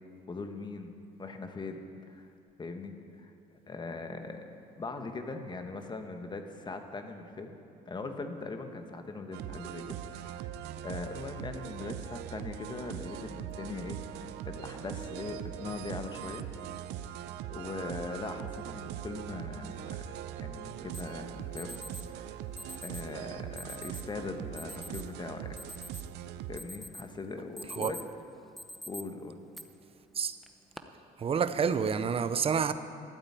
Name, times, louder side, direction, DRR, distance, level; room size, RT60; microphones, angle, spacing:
voice 1, 0.3-0.9 1.2-2.3 2.6-3.3 3.7-4.5 4.8-7.6 7.9-10.5 10.8-16.4 17.0-21.8 22.1-22.4 22.8-25.6 26.5-28.0 28.9-29.4, left 3 dB, 25° left, 1.2 m, -41 dB
sound 1, 9.3-26.6, right 11 dB, 85° right, 0.6 m, -41 dB
Alarm, 20.9-21.0 21.6-22.0 22.6-23.1 23.6-24.0 24.6-25.0 25.4-26.2 26.6-27.1 27.4-28.1 28.6-29.0 29.5-29.6 30.4-30.8, equal, ahead, 0.8 m, -44 dB
voice 2, 31.2-32.7, right 6 dB, 35° right, 0.6 m, -28 dB
12.0 x 8.7 x 8.7 m
cardioid pair, 110°, 17 cm